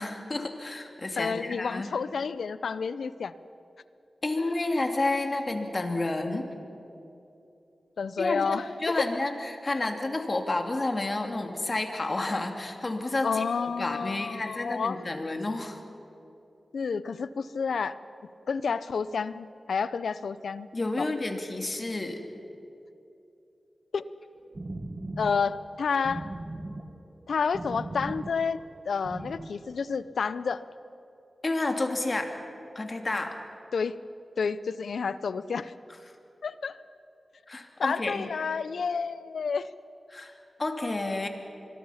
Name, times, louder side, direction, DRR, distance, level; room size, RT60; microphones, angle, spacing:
voice 1, 0.0-1.9 4.2-6.4 8.2-13.4 13.8-15.8 20.7-22.2 31.4-32.3 32.7-33.4 37.5-38.3 40.1-41.3, left 2 dB, 40° left, 4 dB, 2.6 m, -30 dB
voice 2, 1.2-3.3 4.4-4.5 8.0-8.7 9.8-9.9 13.2-15.0 16.7-18.0 18.5-20.7 21.0-21.1 23.9-24.0 25.2-26.3 27.3-28.6 28.9-30.6 33.7-34.0 34.4-35.7 36.4-36.8 37.8-39.7, left 5 dB, 90° left, 15 dB, 0.6 m, -30 dB
sound 1, 24.3-29.5, right 2 dB, 35° right, 1.5 m, -39 dB
25.5 x 22.0 x 5.8 m, 2.8 s
cardioid pair, 60°, 0 cm